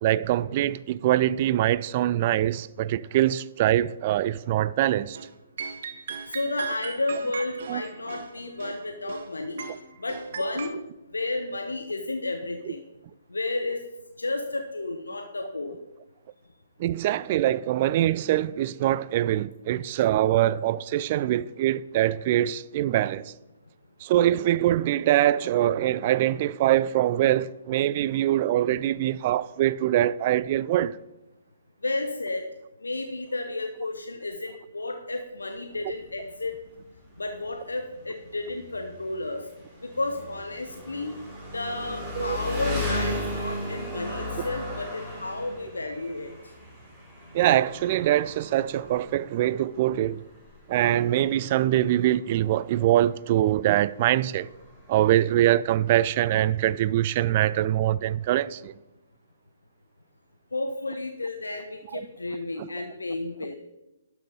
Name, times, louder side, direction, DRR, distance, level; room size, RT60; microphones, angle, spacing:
voice 1, 0.0-5.2 7.7-7.8 16.8-23.3 24.0-31.0 42.2-42.4 47.3-50.2 50.7-54.5 54.9-58.7 61.9-62.0 62.6-62.7, right 13 dB, 35° right, 0.3 m, -23 dB
sound 1, 5.1-5.3 5.6-9.3 9.6-10.7, right 6 dB, 50° right, 1.1 m, -37 dB
voice 2, 6.3-9.6 10.0-10.8 11.1-12.8 13.3-13.8 14.2-15.8 31.8-32.4 32.8-36.5 37.2-39.4 39.9-41.1 41.5-46.3 60.5-63.5, left 2 dB, 75° left, 0.9 m, -32 dB
Engine, 35.7-55.3, left 1 dB, ahead, 3.5 m, -37 dB
11.5 x 6.3 x 5.3 m
figure-of-eight pair, 125°, 0 cm